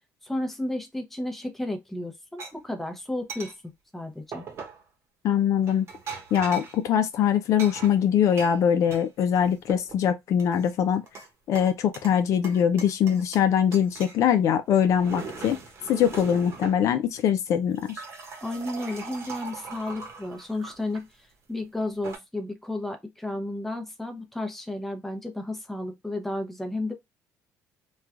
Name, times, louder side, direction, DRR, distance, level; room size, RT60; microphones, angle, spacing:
voice 1, 0.2-3.5 3.9-4.5 18.4-26.9, left 1 dB, 5° left, 0.6 m, -33 dB
sound 1, 2.4-2.5 3.3-3.5 4.3-4.8 5.6-6.8 7.6-9.0 9.4-10.0 10.4-11.3 11.5-12.2 12.4-13.5 13.7-14.2 14.7-16.8 17.6-21.0 21.8-22.2, right 4 dB, 45° right, 0.9 m, -40 dB
voice 2, 5.2-5.9 6.3-11.0 11.5-15.6 15.9-18.0, left 8 dB, 60° left, 0.4 m, -22 dB
3.1 x 2.3 x 2.4 m
cardioid pair, 115°, 6 cm